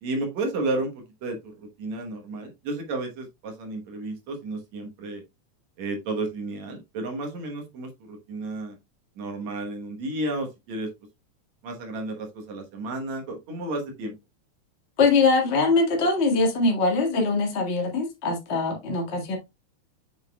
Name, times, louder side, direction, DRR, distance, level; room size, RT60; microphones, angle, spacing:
voice 1, 0.0-5.2 5.8-8.8 9.2-10.9 11.6-14.1, right 2 dB, 70° right, 2.5 m, -32 dB
voice 2, 15.0-19.4, left 3 dB, 30° left, 1.5 m, -22 dB
7.3 x 6.3 x 2.3 m
omnidirectional pair, 3.4 m